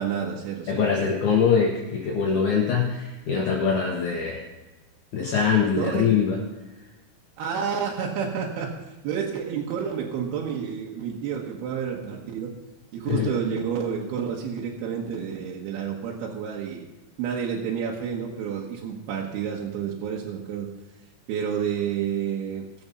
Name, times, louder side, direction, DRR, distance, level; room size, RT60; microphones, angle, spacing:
voice 1, 0.0-0.9 5.8-6.1 7.4-8.7 9.0-12.5 12.9-16.9 17.2-20.7 21.3-22.7, right 7 dB, 85° right, -2 dB, 3.3 m, -29 dB
voice 2, 0.7-4.4 5.1-6.4 13.1-13.3, left 6 dB, 60° left, -2 dB, 2.5 m, -23 dB
20.0 x 7.2 x 5.4 m, 1.1 s
omnidirectional pair, 4.4 m